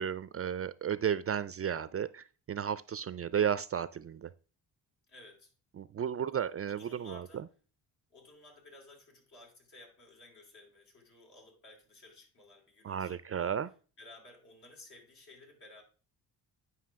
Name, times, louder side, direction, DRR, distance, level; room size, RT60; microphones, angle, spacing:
voice 1, 0.0-4.3 5.8-7.2 12.8-13.7, right 8 dB, 35° right, 0.4 m, -33 dB
voice 2, 5.1-5.5 6.7-7.5 8.1-13.6 14.0-15.8, left 2 dB, 65° left, 3.3 m, -56 dB
9.4 x 5.5 x 3.6 m
cardioid pair, 70°, 42 cm